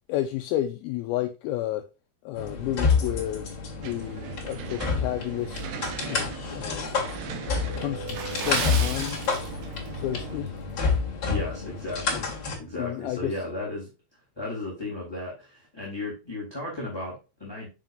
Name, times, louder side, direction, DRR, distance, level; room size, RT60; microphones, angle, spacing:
voice 1, 0.1-1.9 2.3-3.5 3.8-5.6 6.1-6.9 7.8-8.2 8.4-9.2 10.0-10.5 12.1-12.2 12.8-13.3, left 13 dB, 85° left, 2.2 m, -31 dB
sound 1, 2.4-12.6, left 5 dB, 35° left, 2.3 m, -29 dB
sound 2, 3.8-10.4, right 6 dB, 70° right, 2.1 m, -40 dB
Water / Splash splatter, 8.0-9.9 10.2-10.5 11.0-11.3 11.7-11.8, right 6 dB, 90° right, 4.3 m, -34 dB
voice 2, 10.4-10.7 11.3-13.9 14.4-17.7, left 2 dB, 5° left, 2.1 m, -35 dB
7.5 x 7.3 x 2.5 m
omnidirectional pair, 5.2 m